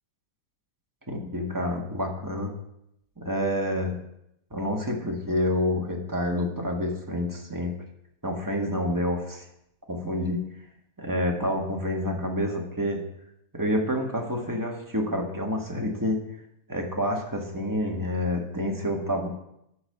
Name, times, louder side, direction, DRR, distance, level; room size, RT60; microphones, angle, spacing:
voice 1, 1.1-2.5 3.2-4.0 4.5-7.7 8.2-9.5 9.9-10.4 11.0-13.0 13.5-16.2 16.7-19.3, left 1 dB, 10° right, 0 dB, 1.9 m, -28 dB
13.5 x 5.6 x 6.8 m, 0.79 s
omnidirectional pair, 1.8 m